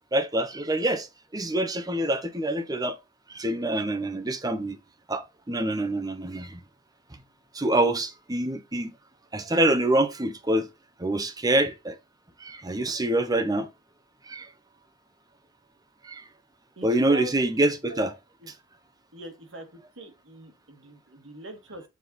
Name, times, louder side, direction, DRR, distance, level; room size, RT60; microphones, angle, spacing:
voice 1, 0.1-1.1 1.3-2.9 3.3-4.8 5.1-6.6 7.5-8.9 9.3-10.7 11.0-12.0 12.4-13.7 14.3-14.5 16.0-16.2 16.8-18.1, right 1 dB, 20° right, 0.8 m, -26 dB
voice 2, 16.8-17.4 17.9-18.1 18.4-18.5 19.1-21.8, right 1 dB, 80° right, 1.8 m, -42 dB
7.3 x 4.2 x 3.9 m
head